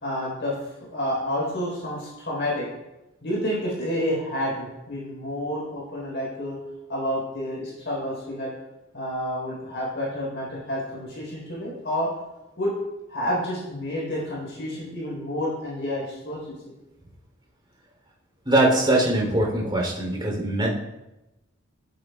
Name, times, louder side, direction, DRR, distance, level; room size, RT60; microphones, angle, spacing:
voice 1, 0.0-2.7 3.2-6.6 6.9-8.5 8.9-12.1 12.6-12.8 13.1-16.7, equal, 55° left, -5 dB, 4.1 m, -29 dB
voice 2, 18.4-20.7, right 1 dB, 25° right, -2 dB, 3.3 m, -22 dB
17.0 x 8.0 x 2.4 m, 0.98 s
head